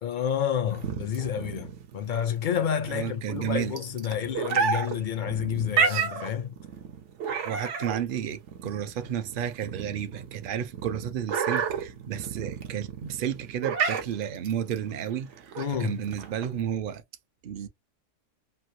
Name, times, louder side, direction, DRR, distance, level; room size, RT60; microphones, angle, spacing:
voice 1, 0.0-6.5 15.6-16.0, left 8 dB, 60° left, 0.5 m, -29 dB
sound 1, 0.7-16.6, right 6 dB, 75° right, 1.0 m, -31 dB
voice 2, 2.9-3.8 7.4-17.0 17.4-17.7, right 9 dB, 60° right, 0.6 m, -32 dB
3.1 x 2.5 x 2.7 m
omnidirectional pair, 1.3 m